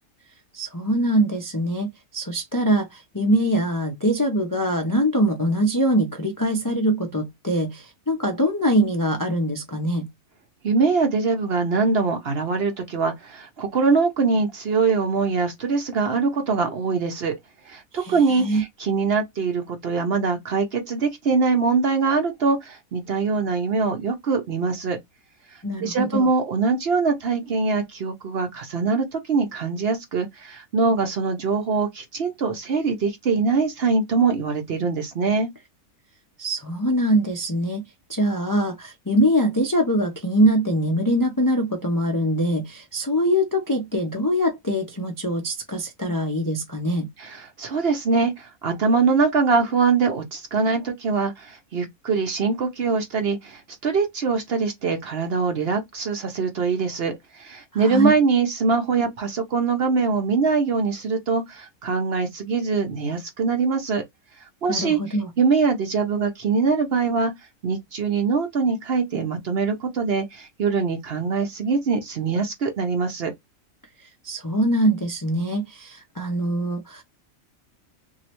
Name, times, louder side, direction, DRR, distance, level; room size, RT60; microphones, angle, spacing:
voice 1, 0.5-10.1 17.9-18.6 25.6-26.3 36.4-37.8 38.1-47.1 57.7-58.1 64.7-65.3 74.2-77.0, equal, 30° left, 0.3 m, -23 dB
voice 2, 10.6-17.4 17.7-25.0 25.8-35.5 47.2-64.0 64.6-67.3 67.6-73.3, right 4 dB, 55° right, 0.8 m, -23 dB
3.1 x 2.7 x 2.9 m
omnidirectional pair, 1.5 m